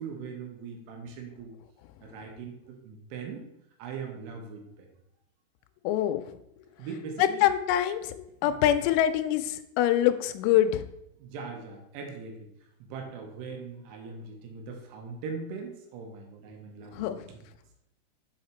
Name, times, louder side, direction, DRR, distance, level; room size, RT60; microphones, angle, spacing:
voice 1, 0.0-1.5 2.0-3.4 3.8-4.9 6.8-7.5 8.4-8.6 11.2-12.5 12.8-17.4, right 5 dB, 75° right, 2 dB, 3.1 m, -40 dB
voice 2, 5.8-6.2 7.2-10.8 16.9-17.2, left 11 dB, 85° left, 9 dB, 3.0 m, -25 dB
6.8 x 4.9 x 4.3 m, 0.81 s
omnidirectional pair, 6.0 m